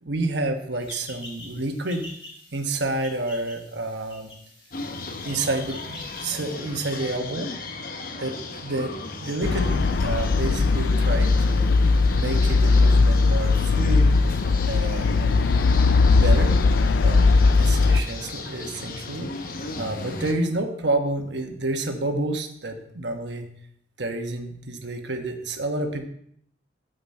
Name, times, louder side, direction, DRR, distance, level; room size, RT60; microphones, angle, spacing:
voice 1, 0.0-2.1 2.5-4.3 5.2-7.6 8.2-11.8 12.2-14.2 14.6-15.5 16.1-16.6 17.0-19.3 19.8-23.5 24.0-26.1, right 2 dB, 70° right, 5 dB, 1.2 m, -29 dB
sound 1, 0.8-6.4, left 1 dB, 30° left, 2.3 m, -45 dB
sound 2, 4.7-20.3, left 3 dB, 50° left, 0.9 m, -36 dB
sound 3, 9.4-18.0, left 3 dB, 70° left, 0.4 m, -19 dB
9.2 x 8.0 x 4.3 m, 0.69 s
head